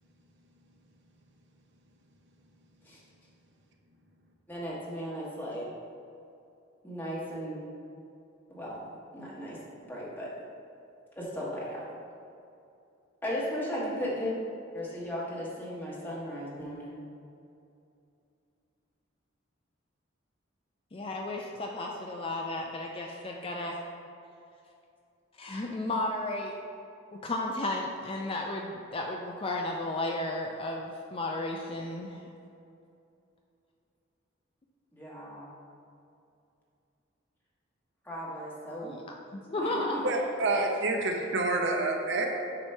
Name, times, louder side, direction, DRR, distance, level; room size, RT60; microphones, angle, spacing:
voice 1, 4.5-5.7 6.8-7.6 8.5-9.6 9.8-10.3 11.1-11.8 13.2-14.3 14.7-17.1 34.9-35.5 38.0-38.9 39.6-40.1, equal, 10° left, -6 dB, 1.3 m, -36 dB
voice 2, 20.9-23.8 25.4-26.5 27.1-32.2 38.8-40.0, left 2 dB, 25° left, 1 dB, 0.4 m, -34 dB
voice 3, 40.0-42.3, right 2 dB, 60° right, 1 dB, 0.7 m, -28 dB
7.5 x 3.0 x 5.5 m, 2.6 s
head